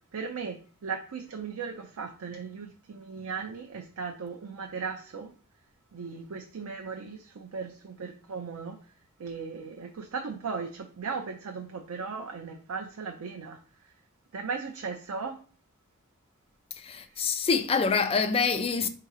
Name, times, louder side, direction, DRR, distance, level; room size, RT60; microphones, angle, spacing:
voice 1, 0.1-5.3 5.9-8.8 9.2-13.6 14.3-15.4, right 5 dB, 75° right, 0.5 m, -37 dB
voice 2, 16.8-18.9, left 5 dB, 25° left, 0.4 m, -26 dB
3.8 x 2.8 x 4.8 m
head